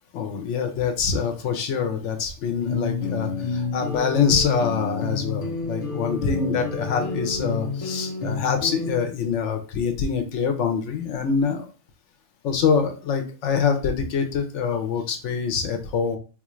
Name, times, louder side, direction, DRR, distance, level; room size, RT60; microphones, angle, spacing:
voice 1, 0.1-11.7 12.4-16.2, left 6 dB, 70° left, 6 dB, 0.9 m, -25 dB
sound 1, 2.6-9.0, left 3 dB, 35° left, 0.5 m, -29 dB
3.9 x 2.4 x 3.0 m, 0.36 s
omnidirectional pair, 1.4 m